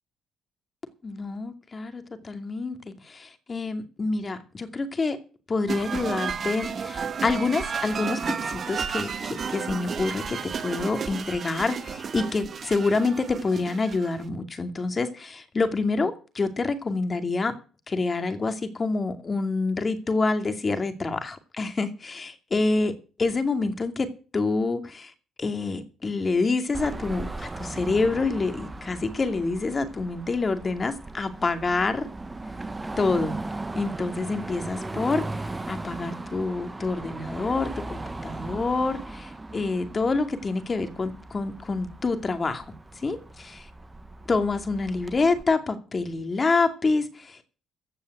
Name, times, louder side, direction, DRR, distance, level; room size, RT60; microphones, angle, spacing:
voice 1, 1.0-2.8 3.0-5.2 5.5-17.5 17.9-22.9 23.2-24.1 24.3-25.1 25.4-32.1 33.0-33.3 33.7-42.6 43.0-43.7 44.3-47.6, left 3 dB, 35° left, 2.5 m, -27 dB
sound 1, 5.7-14.2, right 6 dB, 50° right, 1.8 m, -32 dB
Car passing by / Traffic noise roadway noise / Engine, 26.7-45.4, right 2 dB, 20° right, 1.2 m, -38 dB
15.5 x 5.5 x 9.3 m
cardioid pair, 90°, 0 cm